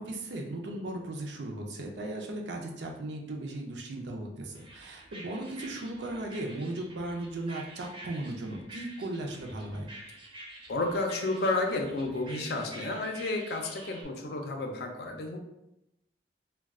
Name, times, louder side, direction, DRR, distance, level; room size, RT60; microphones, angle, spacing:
voice 1, 0.0-9.9, right 1 dB, 80° right, 1 dB, 0.5 m, -37 dB
sound 1, 4.5-14.0, right 1 dB, 30° right, 0.5 m, -48 dB
voice 2, 10.7-15.4, left 2 dB, 60° left, 3 dB, 0.4 m, -31 dB
2.3 x 2.2 x 3.5 m, 0.88 s
head